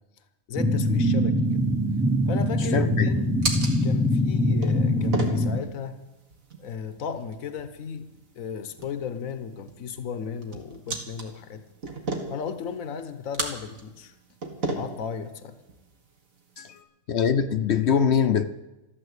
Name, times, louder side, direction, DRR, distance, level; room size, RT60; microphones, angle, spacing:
voice 1, 0.5-1.6 2.3-3.4 3.8-6.0 6.6-8.1 8.3-11.6 12.3-14.1 14.7-15.6 16.6-16.9, left 6 dB, 80° left, 10 dB, 1.4 m, -35 dB
sound 1, 0.6-5.6, left 1 dB, ahead, 0.8 m, -23 dB
sound 2, 1.5-16.8, right 2 dB, 75° right, 2.3 m, -37 dB
voice 2, 2.7-3.1 16.6-16.7 17.1-18.5, left 7 dB, 60° left, 10 dB, 0.9 m, -22 dB
13.5 x 13.0 x 8.2 m, 1.0 s
omnidirectional pair, 1.4 m